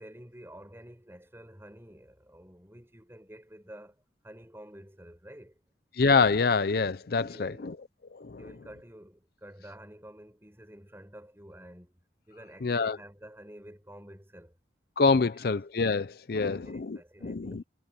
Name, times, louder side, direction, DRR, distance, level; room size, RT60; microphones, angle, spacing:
voice 1, 0.0-4.0 4.2-5.6 7.2-7.8 8.4-14.6 15.3-15.5 16.4-17.6, equal, 15° right, 7.1 m, -50 dB
voice 2, 6.0-7.7 8.1-8.4 12.6-13.0 15.0-17.0 17.2-17.6, left 4 dB, 55° left, 0.5 m, -26 dB
head